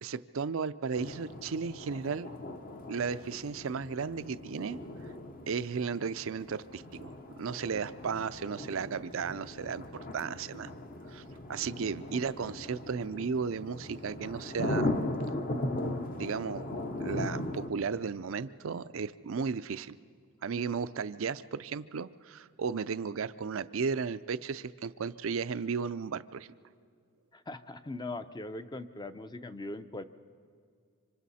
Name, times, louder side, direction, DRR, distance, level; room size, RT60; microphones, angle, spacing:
voice 1, 0.0-2.3 2.9-4.8 5.5-9.8 10.1-10.7 11.1-14.9 15.8-15.9 16.2-16.7 17.0-20.0 20.4-26.5, right 5 dB, 65° right, 14 dB, 0.5 m, -34 dB
sound 1, 0.9-17.7, left 1 dB, 40° left, 0.9 m, -38 dB
voice 2, 27.3-30.0, left 2 dB, 20° left, 11 dB, 0.6 m, -40 dB
25.5 x 25.0 x 4.2 m, 2.2 s
head